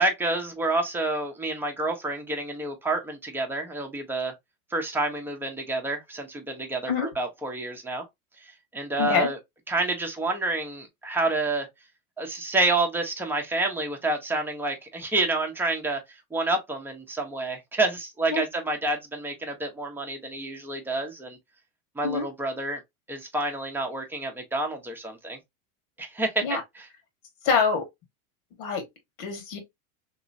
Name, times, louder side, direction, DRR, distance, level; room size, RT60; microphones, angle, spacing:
voice 1, 0.0-4.3 4.7-8.0 8.7-9.4 9.7-11.7 12.2-16.0 16.3-21.4 22.0-22.8 23.1-25.4 26.0-26.9, right 2 dB, 5° right, 0.8 m, -28 dB
voice 2, 9.0-9.3 18.3-18.4 22.0-22.3 26.4-26.6 27.4-27.9 28.6-28.8 29.2-29.6, left 5 dB, 70° left, 1.7 m, -25 dB
3.0 x 2.9 x 2.5 m
supercardioid pair, 115°, 44 cm